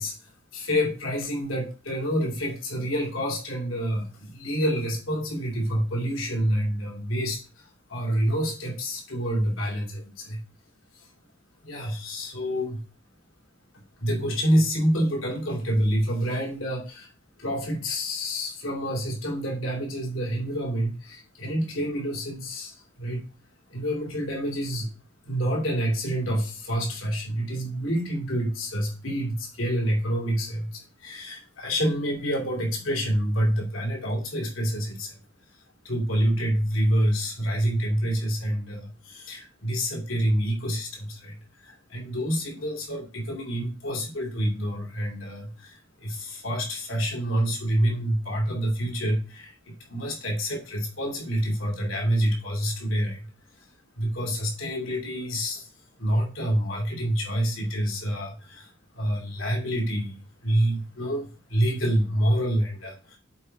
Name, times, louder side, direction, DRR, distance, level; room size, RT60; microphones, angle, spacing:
voice 1, 0.0-10.4 10.9-11.1 11.6-12.8 14.0-17.1 17.4-23.2 23.7-24.9 25.2-35.2 35.8-53.3 53.6-53.7 54.0-55.7 56.0-63.2, equal, 90° left, -1 dB, 2.9 m, -27 dB
7.6 x 4.6 x 4.1 m, 0.34 s
head